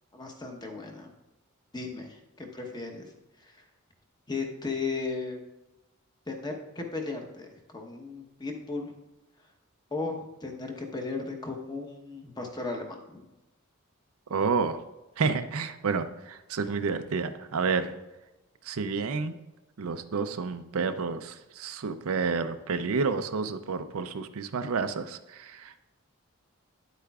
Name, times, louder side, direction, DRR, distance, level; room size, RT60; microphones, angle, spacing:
voice 1, 0.1-1.1 1.7-3.1 3.4-3.6 4.3-5.4 6.3-8.9 9.9-13.3, left 3 dB, 20° left, 3 dB, 0.9 m, -36 dB
voice 2, 14.3-14.8 15.2-17.9 18.6-19.3 19.8-25.8, right 4 dB, 75° right, 10 dB, 0.5 m, -30 dB
9.7 x 8.2 x 2.3 m, 1.0 s
head